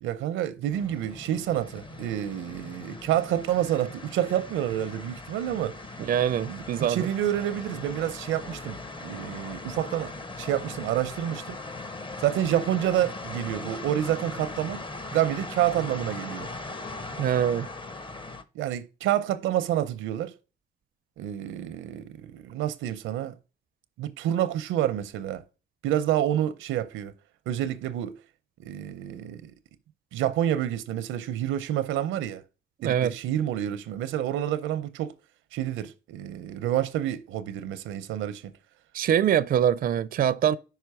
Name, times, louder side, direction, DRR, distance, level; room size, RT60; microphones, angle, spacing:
voice 1, 0.0-5.8 6.5-10.1 10.4-11.6 12.2-14.8 15.1-16.5 18.5-20.3 21.2-23.4 24.0-25.4 25.8-27.1 27.5-28.2 28.6-29.5 30.1-32.4 32.8-35.1 35.5-38.5, right 11 dB, 90° right, 0.6 m, -28 dB
sound 1, 0.7-18.4, left 2 dB, 25° left, 0.7 m, -39 dB
voice 2, 6.0-7.1 17.2-17.7 32.8-33.1 38.9-40.6, right 9 dB, 45° right, 0.4 m, -24 dB
5.6 x 4.6 x 4.7 m
cardioid pair, 90°, 20 cm